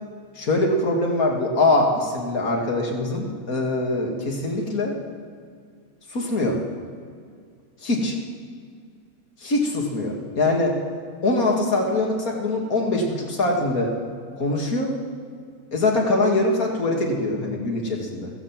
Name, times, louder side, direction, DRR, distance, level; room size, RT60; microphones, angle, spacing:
voice 1, 0.4-5.0 6.1-6.6 7.8-8.2 9.4-10.8 11.2-13.9 14.4-14.9 15.7-18.3, left 2 dB, 70° left, 0 dB, 2.7 m, -23 dB
15.5 x 15.5 x 6.0 m, 2.1 s
omnidirectional pair, 1.6 m